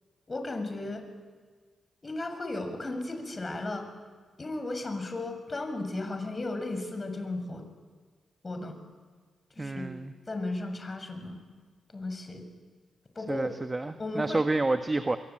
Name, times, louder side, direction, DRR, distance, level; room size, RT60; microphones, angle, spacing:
voice 1, 0.3-1.1 2.0-3.9 4.4-7.7 8.4-8.8 9.6-9.9 10.3-11.4 11.9-12.5 13.2-13.5 14.0-14.5, left 2 dB, 35° left, 6 dB, 6.9 m, -35 dB
voice 2, 9.6-10.1 13.3-15.2, right 2 dB, 30° right, 8 dB, 1.5 m, -29 dB
27.5 x 23.0 x 9.2 m, 1.5 s
supercardioid pair, 40°, 0 cm